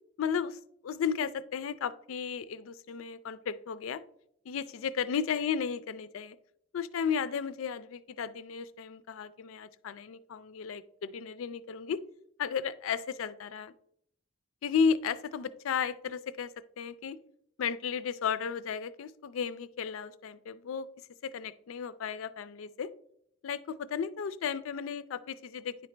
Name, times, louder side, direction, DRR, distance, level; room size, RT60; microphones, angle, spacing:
voice 1, 0.2-4.0 4.5-6.4 6.7-12.0 12.4-13.7 14.6-17.2 17.6-20.9 21.2-22.9 23.4-25.9, left 6 dB, 80° left, 16 dB, 0.4 m, -34 dB
10.0 x 4.0 x 3.3 m, 0.72 s
head